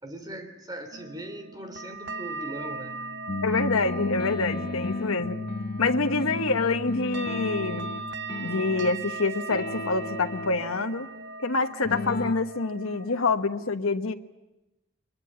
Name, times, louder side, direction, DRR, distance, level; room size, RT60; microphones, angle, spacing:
voice 1, 0.0-3.0 5.2-5.4, right 1 dB, 20° right, 7 dB, 3.0 m, -40 dB
sound 1, 0.9-13.2, right 3 dB, 55° right, 1.2 m, -39 dB
sound 2, 3.3-9.1 9.5-10.6 11.8-12.3, left 2 dB, 50° left, 0.8 m, -33 dB
voice 2, 3.4-5.4 5.8-7.9 8.4-11.1 11.4-14.1, left 3 dB, 85° left, 7 dB, 1.3 m, -26 dB
23.5 x 21.5 x 9.5 m, 0.97 s
head